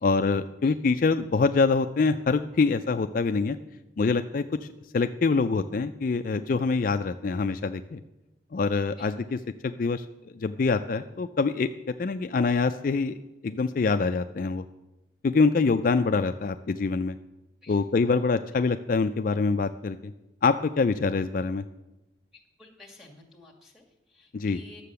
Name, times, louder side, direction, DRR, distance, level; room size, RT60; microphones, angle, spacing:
voice 1, 0.0-3.6 4.0-4.4 4.9-8.0 8.5-9.4 9.6-10.1 10.4-11.7 12.0-13.2 13.4-14.6 15.2-17.2 17.7-20.1 20.4-21.6 24.3-24.6, left 4 dB, 45° left, 8 dB, 0.4 m, -25 dB
voice 2, 22.6-24.8, left 2 dB, 5° right, 0 dB, 2.1 m, -52 dB
11.5 x 7.5 x 6.8 m, 0.98 s
head